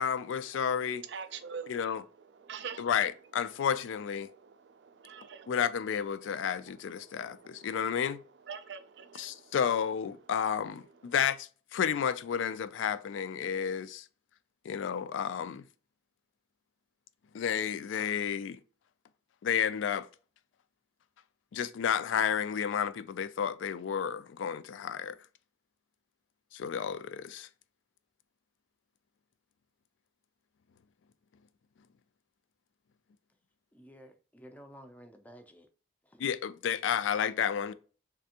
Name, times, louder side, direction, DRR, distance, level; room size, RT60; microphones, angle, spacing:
voice 1, 0.0-1.0 1.7-2.0 2.8-4.3 5.5-8.2 9.1-14.0 14.7-15.7 17.3-18.6 19.4-20.1 21.5-25.2 26.5-27.5 36.2-37.7, left 8 dB, 85° left, 0.3 m, -31 dB
voice 2, 1.1-1.9 2.4-2.9 4.2-5.5 7.0-7.7 8.5-9.5, right 6 dB, 65° right, 0.4 m, -44 dB
voice 3, 33.7-35.7 36.1-36.2, equal, 10° left, 0.4 m, -53 dB
3.4 x 3.3 x 2.8 m
head